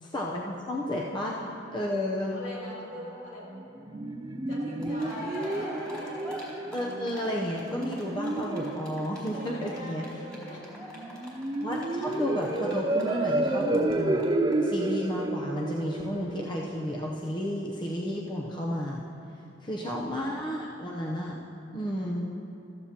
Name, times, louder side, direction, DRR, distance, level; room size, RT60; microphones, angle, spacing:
voice 1, 0.0-2.4 6.7-10.0 11.6-14.3 14.6-19.0 19.6-21.4 21.7-22.3, equal, 25° left, -3 dB, 0.7 m, -32 dB
voice 2, 2.3-3.5 4.5-6.1 9.3-11.2 21.8-22.1, left 1 dB, 65° left, -7 dB, 3.2 m, -43 dB
sound 1, 3.5-17.5, right 1 dB, 20° right, 0.4 m, -31 dB
Cheering, 4.5-4.6 4.8-13.9 14.2-14.3 14.5-14.6, equal, 5° left, 2.7 m, -43 dB
14.5 x 13.5 x 2.9 m, 2.8 s
head